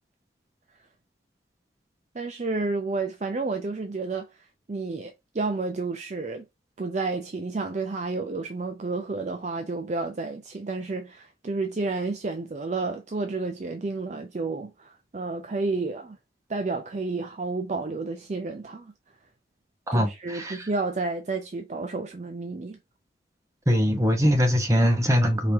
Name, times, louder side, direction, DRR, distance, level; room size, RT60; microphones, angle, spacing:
voice 1, 2.1-6.4 6.8-16.2 16.5-18.9 19.9-22.8, right 3 dB, 40° right, 0.4 m, -31 dB
voice 2, 19.9-20.7 23.7-25.5, equal, 15° right, 0.9 m, -22 dB
4.9 x 2.9 x 3.4 m
head